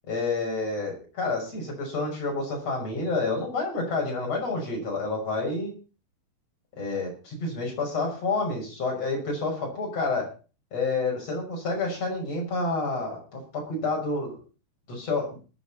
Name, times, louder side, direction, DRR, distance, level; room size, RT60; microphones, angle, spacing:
voice 1, 0.1-5.7 6.8-10.3 10.7-14.4 14.9-15.4, left 3 dB, 40° left, 0 dB, 7.1 m, -29 dB
19.5 x 11.5 x 4.3 m, 0.35 s
omnidirectional pair, 4.5 m